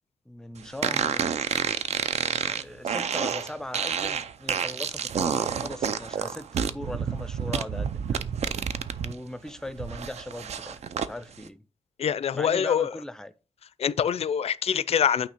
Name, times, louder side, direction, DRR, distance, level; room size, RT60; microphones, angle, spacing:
voice 1, 0.3-1.4 2.4-8.3 9.0-11.6 12.3-13.3, left 1 dB, 5° left, 0.4 m, -39 dB
sound 1, 0.8-9.1 9.5-11.1, right 7 dB, 75° right, 0.5 m, -29 dB
voice 2, 12.0-13.0 13.8-15.3, left 8 dB, 65° left, 0.4 m, -25 dB
8.8 x 3.1 x 5.7 m
wide cardioid pair, 170°, 11 cm